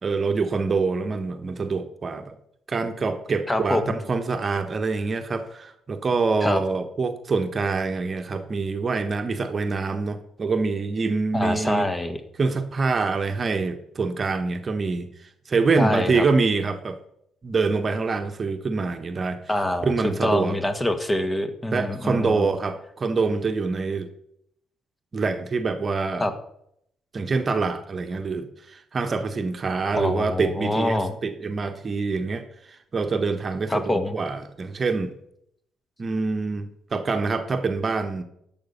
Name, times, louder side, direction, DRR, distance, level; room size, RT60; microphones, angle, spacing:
voice 1, 0.0-2.3 2.7-11.9 12.4-15.1 15.5-17.0 17.4-19.4 19.8-20.6 21.7-24.1 25.1-26.2 27.1-35.1 36.0-38.2, right 4 dB, 35° right, 8 dB, 1.2 m, -25 dB
voice 2, 3.5-4.0 6.4-6.6 11.3-12.2 15.8-16.2 19.5-22.5 26.2-26.3 29.9-31.2 33.7-34.2, left 1 dB, 15° left, 8 dB, 1.6 m, -25 dB
12.0 x 7.5 x 5.6 m, 0.75 s
figure-of-eight pair, 45°, 0 cm